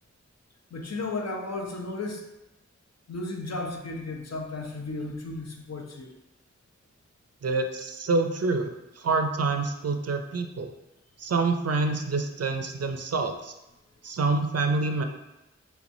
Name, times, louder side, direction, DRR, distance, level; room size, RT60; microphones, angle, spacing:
voice 1, 0.7-2.3 3.1-6.2, left 2 dB, 60° left, 2 dB, 0.6 m, -34 dB
voice 2, 7.4-8.7 9.0-10.7 11.2-13.5 14.0-15.0, right 3 dB, 55° right, 6 dB, 0.4 m, -27 dB
3.4 x 3.0 x 2.6 m, 0.95 s
wide cardioid pair, 40°, 29 cm